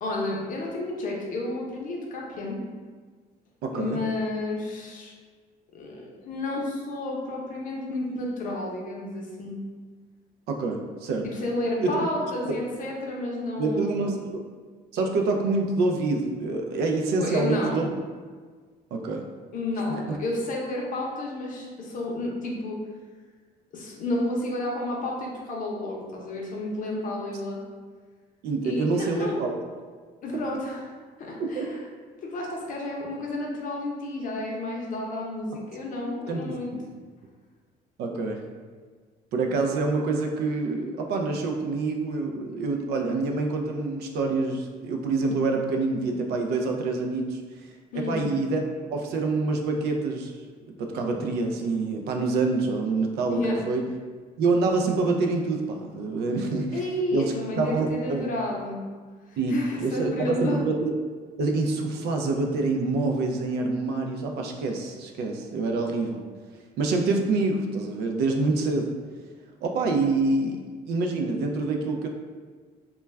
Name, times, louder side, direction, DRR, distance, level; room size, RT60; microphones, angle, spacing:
voice 1, 0.0-2.6 3.7-5.1 5.7-9.6 11.2-14.0 17.2-17.9 19.5-22.8 23.7-27.6 28.6-29.3 30.2-30.8 31.2-31.8 32.2-36.7 47.9-48.3 53.3-53.6 56.7-58.8 59.3-60.6, left 2 dB, 50° left, -2 dB, 0.6 m, -31 dB
voice 2, 3.6-4.0 10.5-11.3 11.8-12.1 12.5-12.6 13.6-14.2 14.9-17.9 18.9-19.3 19.9-20.2 28.4-29.6 31.4-31.7 36.3-36.9 38.0-38.4 39.3-47.4 47.9-48.6 48.9-50.3 50.7-53.8 54.4-56.8 57.1-58.3 59.4-60.9 61.4-66.3 66.8-68.9 69.6-72.1, right 3 dB, 70° right, 3 dB, 0.4 m, -26 dB
2.2 x 2.2 x 3.2 m, 1.5 s
cardioid pair, 110°, 17 cm